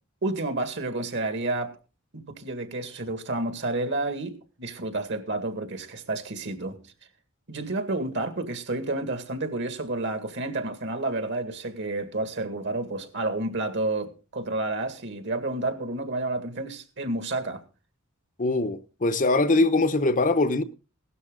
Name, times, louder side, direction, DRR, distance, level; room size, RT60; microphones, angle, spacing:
voice 1, 0.2-1.7 2.1-6.8 7.5-17.6, right 2 dB, 60° right, 2.1 m, -30 dB
voice 2, 18.4-20.6, left 2 dB, 40° left, 0.8 m, -22 dB
16.5 x 12.5 x 3.9 m
head